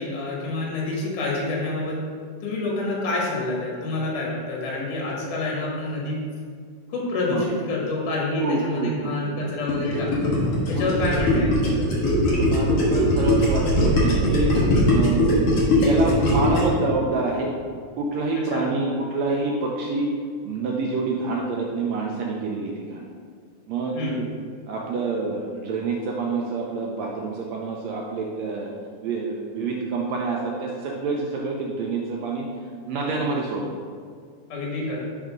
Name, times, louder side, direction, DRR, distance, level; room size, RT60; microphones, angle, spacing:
voice 1, 0.0-2.0 2.4-6.2 6.9-10.3 10.7-11.9 18.5-18.6 23.9-24.2 34.5-35.0, left 2 dB, 80° left, -3 dB, 2.8 m, -27 dB
voice 2, 8.4-9.6 10.7-10.8 12.3-14.6 14.9-15.3 15.8-17.5 18.0-20.1 20.4-23.0 23.7-24.2 24.7-28.7 29.0-32.5 32.8-33.6, right 3 dB, 75° right, -1 dB, 1.6 m, -27 dB
Gurgling, 9.7-16.8, left 1 dB, 50° left, 2.1 m, -20 dB
6.6 x 3.7 x 5.9 m, 2.1 s
omnidirectional pair, 3.6 m